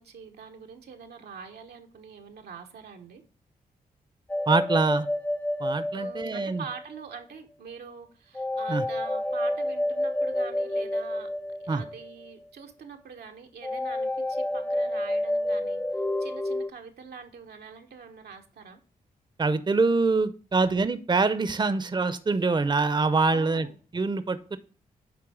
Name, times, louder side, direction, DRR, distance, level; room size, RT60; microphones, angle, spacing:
voice 1, 0.0-3.2 5.9-11.3 11.6-15.8 16.2-18.8 23.2-23.8, right 6 dB, 85° right, 1.0 m, -44 dB
sound 1, 4.3-7.0 8.3-12.3 13.6-16.7, left 1 dB, 10° left, 0.4 m, -29 dB
voice 2, 4.5-5.1 5.6-6.6 8.7-8.8 11.7-11.8 19.4-23.7 23.9-24.6, right 3 dB, 30° right, 0.6 m, -25 dB
9.6 x 3.4 x 4.7 m
cardioid pair, 50°, 16 cm